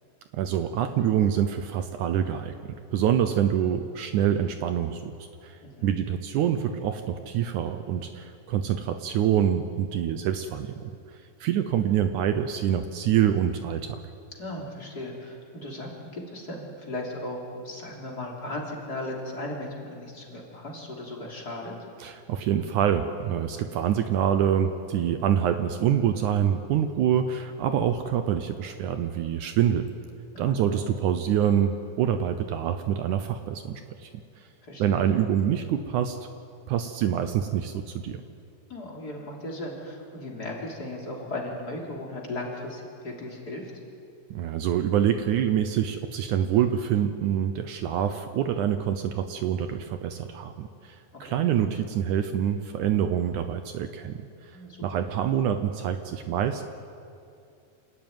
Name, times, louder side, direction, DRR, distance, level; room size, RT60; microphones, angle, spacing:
voice 1, 0.3-10.9 11.4-14.0 22.0-29.9 30.4-34.1 34.4-34.5 34.8-36.2 36.7-38.2 44.3-54.5 54.8-56.6, right 9 dB, 75° right, 8 dB, 1.9 m, -26 dB
voice 2, 14.4-21.7 30.3-30.9 34.6-35.0 38.7-43.7 51.2-51.4 54.5-55.0, left 1 dB, 25° left, -2 dB, 3.4 m, -37 dB
28.0 x 12.5 x 9.4 m, 2.5 s
omnidirectional pair, 4.2 m